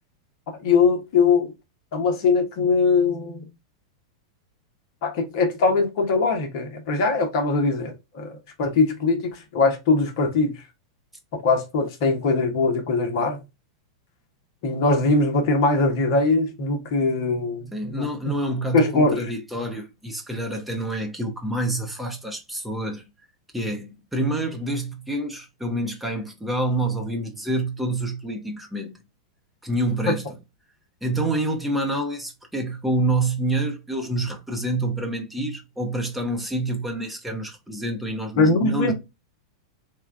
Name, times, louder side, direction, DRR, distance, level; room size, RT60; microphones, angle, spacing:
voice 1, 0.6-1.5 1.9-3.5 5.0-10.5 11.3-13.4 14.6-18.3 18.7-19.3 38.4-38.9, left 3 dB, 50° left, 1.1 m, -21 dB
voice 2, 17.7-23.1 23.5-29.0 29.6-30.3 31.0-38.9, right 1 dB, 5° right, 0.9 m, -27 dB
3.6 x 2.4 x 3.4 m
figure-of-eight pair, 95°, 2 cm